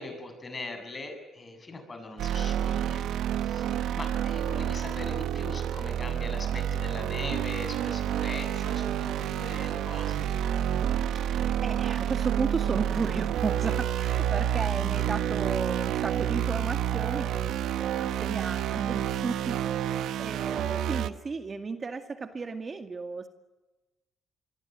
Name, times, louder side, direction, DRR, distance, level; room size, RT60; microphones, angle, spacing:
voice 1, 0.0-3.1 3.4-10.3, left 2 dB, 30° left, 7 dB, 7.7 m, -40 dB
sound 1, 2.2-21.1, right 10 dB, 80° right, 1.2 m, -29 dB
voice 2, 11.1-23.3, right 4 dB, 35° right, 8 dB, 2.1 m, -34 dB
26.5 x 22.5 x 9.1 m, 1.1 s
cardioid pair, 90°, 0 cm